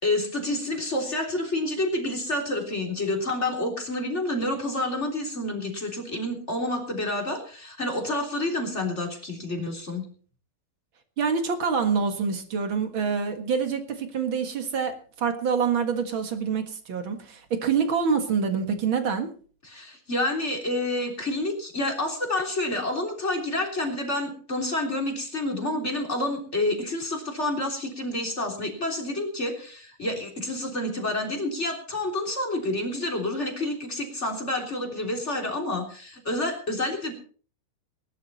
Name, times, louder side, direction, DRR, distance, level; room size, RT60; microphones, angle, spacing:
voice 1, 0.0-10.1 19.6-37.1, left 1 dB, 20° left, 2 dB, 3.4 m, -29 dB
voice 2, 11.2-19.3, right 6 dB, 45° right, 7 dB, 1.8 m, -26 dB
20.5 x 11.5 x 4.1 m, 0.42 s
omnidirectional pair, 4.1 m